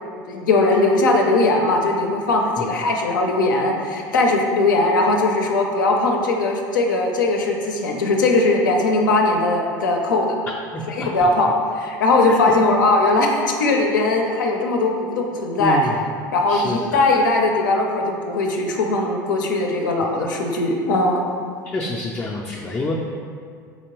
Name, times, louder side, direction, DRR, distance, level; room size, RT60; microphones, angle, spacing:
voice 1, 0.3-10.3 10.9-11.5 11.8-13.3 13.6-15.8 16.3-21.2, left 2 dB, 85° left, 1 dB, 0.5 m, -19 dB
voice 2, 10.7-11.3 12.3-12.4 15.6-16.0 16.5-16.8 20.2-20.3 21.6-22.9, left 2 dB, 20° left, -3 dB, 0.4 m, -27 dB
4.0 x 2.9 x 3.0 m, 2.2 s
hypercardioid pair, 80°, 10 cm